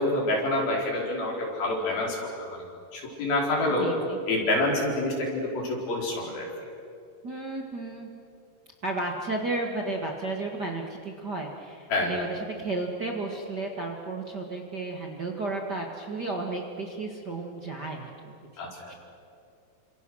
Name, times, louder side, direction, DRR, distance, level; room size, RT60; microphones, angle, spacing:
voice 1, 0.0-2.6 2.9-3.9 4.3-6.5 11.9-12.1 18.6-18.9, left 2 dB, 80° left, -1 dB, 6.3 m, -27 dB
voice 2, 3.8-4.2 7.2-8.1 8.8-18.1 18.5-18.6 18.9-19.0, right 2 dB, 40° right, 0 dB, 1.7 m, -33 dB
29.5 x 26.0 x 6.4 m, 2.5 s
omnidirectional pair, 4.2 m